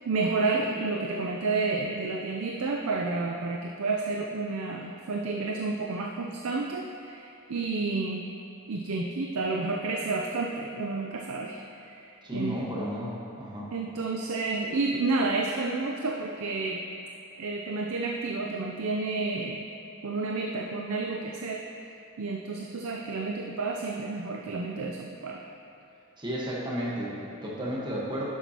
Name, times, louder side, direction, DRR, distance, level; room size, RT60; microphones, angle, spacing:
voice 1, 0.0-8.2 8.7-12.6 13.7-16.8 17.4-19.7 20.0-21.7 22.2-25.5, right 3 dB, 70° right, 0 dB, 0.5 m, -30 dB
voice 2, 12.2-13.7 26.2-28.2, equal, 20° right, -5 dB, 1.2 m, -33 dB
10.5 x 7.1 x 2.9 m, 2.8 s
head